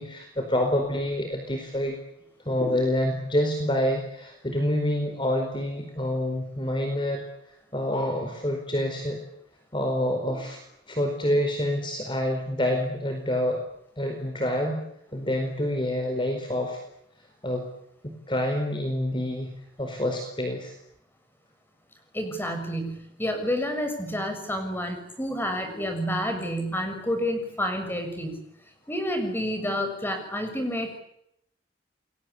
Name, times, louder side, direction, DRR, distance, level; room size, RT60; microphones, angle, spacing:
voice 1, 0.0-2.0 2.4-9.2 9.7-10.6 10.9-13.6 14.0-14.8 15.1-16.8 17.4-17.7 18.0-19.5 19.8-20.8, left 1 dB, 25° left, 4 dB, 4.7 m, -27 dB
voice 2, 22.1-28.4 28.9-31.0, equal, 10° left, 6 dB, 6.8 m, -29 dB
30.0 x 22.5 x 8.5 m, 0.76 s
head